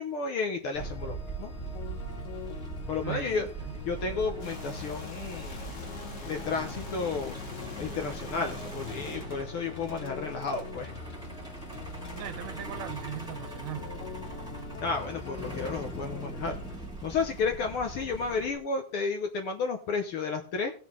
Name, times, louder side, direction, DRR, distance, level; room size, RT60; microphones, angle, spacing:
voice 1, 0.0-1.5 2.9-3.5 3.8-5.7 6.3-7.3 7.8-10.9 14.8-16.6 17.0-20.7, left 4 dB, 65° left, 1.5 m, -32 dB
sound 1, 0.8-16.8, left 2 dB, 85° left, 3.0 m, -42 dB
Truck, 0.8-18.6, right 2 dB, ahead, 1.6 m, -42 dB
voice 2, 3.0-3.8 12.2-14.0, right 11 dB, 75° right, 2.1 m, -39 dB
sound 2, 4.4-12.5, left 3 dB, 35° left, 1.5 m, -47 dB
18.0 x 6.0 x 3.7 m
omnidirectional pair, 3.3 m